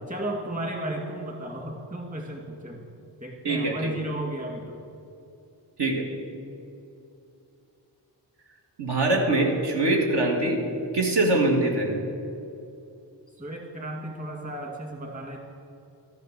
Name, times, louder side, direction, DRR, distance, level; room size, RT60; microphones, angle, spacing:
voice 1, 0.0-2.9 3.2-4.8 13.4-15.4, right 1 dB, 20° right, 0 dB, 2.2 m, -34 dB
voice 2, 3.4-3.9 5.8-6.1 8.8-10.6 10.9-11.9, right 2 dB, 65° right, 1 dB, 2.1 m, -23 dB
14.0 x 10.5 x 6.9 m, 2.7 s
wide cardioid pair, 130°, 43 cm